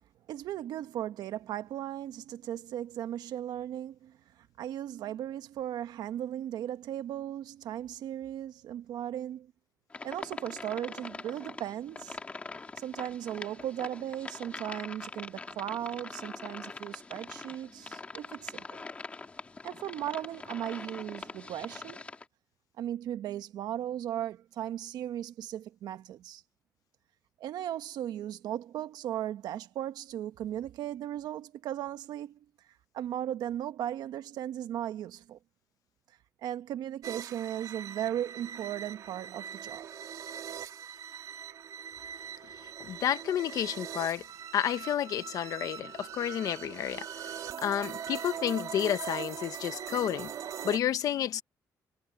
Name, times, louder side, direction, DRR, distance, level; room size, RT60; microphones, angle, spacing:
voice 1, 0.3-9.5 10.0-12.2 12.8-18.6 19.6-22.0 22.8-26.4 27.4-32.4 32.9-35.4 36.4-39.9, right 11 dB, 90° right, 1.3 m, -37 dB
sound 1, 9.9-22.2, left 3 dB, 20° left, 2.5 m, -43 dB
sound 2, 37.0-50.8, right 8 dB, 60° right, 2.6 m, -41 dB
voice 2, 42.8-44.2 44.5-50.3 50.6-51.4, left 10 dB, 60° left, 1.0 m, -31 dB
cardioid pair, 180°, 7 cm